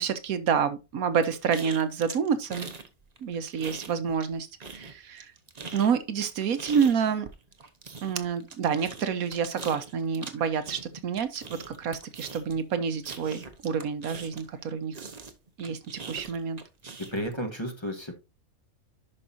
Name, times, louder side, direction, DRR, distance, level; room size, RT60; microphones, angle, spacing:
voice 1, 0.0-2.7 3.2-5.3 5.7-7.3 8.0-14.9 15.6-15.8 16.1-16.6, right 6 dB, 80° right, 1.3 m, -28 dB
sound 1, 1.2-2.9 3.2-4.3 4.6-14.6 14.9-17.3, right 4 dB, 30° right, 0.9 m, -42 dB
voice 2, 17.0-18.1, equal, 20° left, 1.4 m, -32 dB
11.0 x 5.4 x 2.7 m
omnidirectional pair, 1.5 m